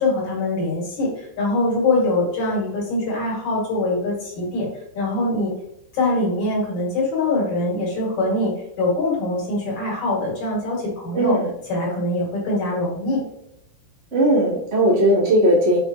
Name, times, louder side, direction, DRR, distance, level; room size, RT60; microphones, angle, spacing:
voice 1, 0.0-4.7 4.9-5.5 5.9-8.5 8.8-11.4 11.7-13.2, left 2 dB, 50° left, -4 dB, 2.7 m, -23 dB
voice 2, 11.1-11.5 14.1-15.8, right 1 dB, 30° right, -6 dB, 1.2 m, -17 dB
7.5 x 5.4 x 2.9 m, 0.83 s
omnidirectional pair, 5.3 m